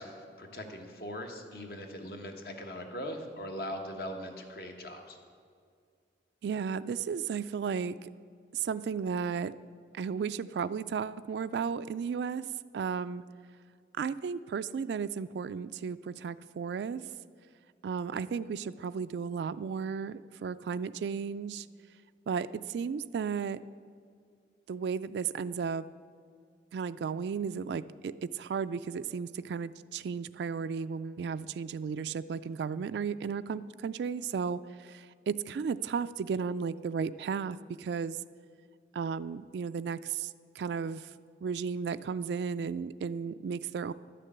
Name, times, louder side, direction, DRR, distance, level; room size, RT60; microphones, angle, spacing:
voice 1, 0.0-5.2, equal, 60° left, 4 dB, 1.3 m, -40 dB
voice 2, 6.4-8.1 8.5-9.5 9.9-12.4 12.7-13.2 14.0-17.0 17.8-21.7 22.3-23.6 24.7-25.8 26.7-38.2 38.9-40.3 40.6-41.1 41.4-43.9, right 6 dB, 75° right, 13 dB, 0.3 m, -34 dB
11.5 x 6.7 x 8.6 m, 2.2 s
head